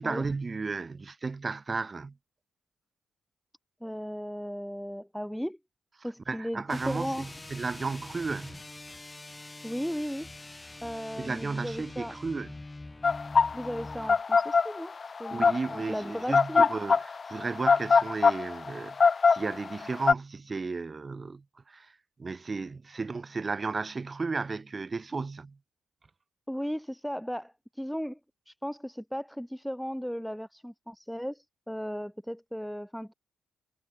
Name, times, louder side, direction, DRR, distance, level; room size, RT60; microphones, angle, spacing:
voice 1, 0.0-2.2 6.0-8.6 11.2-12.5 15.3-21.9 22.2-25.6, right 4 dB, 35° right, 0.7 m, -34 dB
voice 2, 3.8-5.6 6.0-7.3 9.6-12.1 13.5-14.9 15.2-16.7 26.5-28.2 28.5-33.1, equal, ahead, 1.1 m, -36 dB
sound 1, 6.7-14.2, left 2 dB, 20° left, 0.8 m, -45 dB
sound 2, 13.0-20.1, left 5 dB, 40° left, 0.4 m, -22 dB
supercardioid pair, 60°, 0 cm